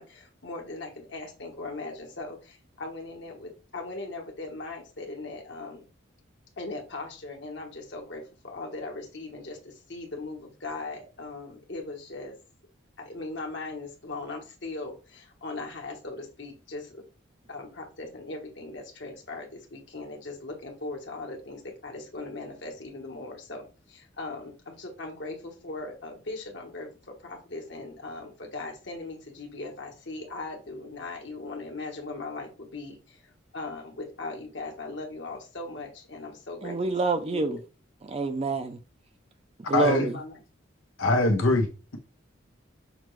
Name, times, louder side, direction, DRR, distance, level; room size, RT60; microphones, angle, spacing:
voice 1, 0.0-5.9 6.6-12.3 13.0-17.0 17.5-33.2 33.5-36.8 37.1-37.6 39.8-40.4, left 3 dB, 60° left, 1.1 m, -39 dB
voice 2, 36.6-37.6 38.0-38.8 39.7-40.2, right 3 dB, 30° right, 0.4 m, -27 dB
voice 3, 39.7-40.0 41.0-42.0, left 2 dB, 90° left, 0.8 m, -23 dB
5.8 x 2.3 x 3.1 m
head